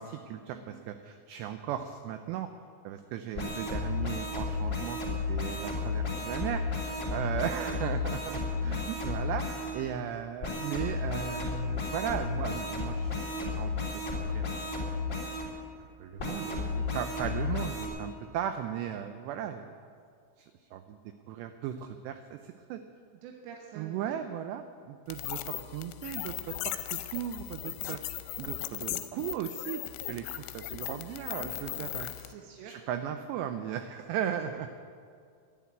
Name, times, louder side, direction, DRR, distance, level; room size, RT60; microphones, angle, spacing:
voice 1, 0.0-2.5 2.8-14.7 16.0-19.8 20.4-21.0 21.3-22.8 23.8-28.0 28.4-29.8 30.1-32.1 32.6-34.7, right 10 dB, 90° right, 8 dB, 2.4 m, -37 dB
sound 1, 3.3-9.7 10.4-15.5 16.2-17.9, left 3 dB, 20° left, 2.7 m, -33 dB
voice 2, 7.4-7.7 23.2-24.2 32.1-32.8, right 7 dB, 75° right, 1 dB, 2.9 m, -47 dB
sound 2, 25.1-32.3, left 16 dB, 85° left, 3.1 m, -38 dB
11.5 x 10.5 x 9.5 m, 2.2 s
omnidirectional pair, 5.7 m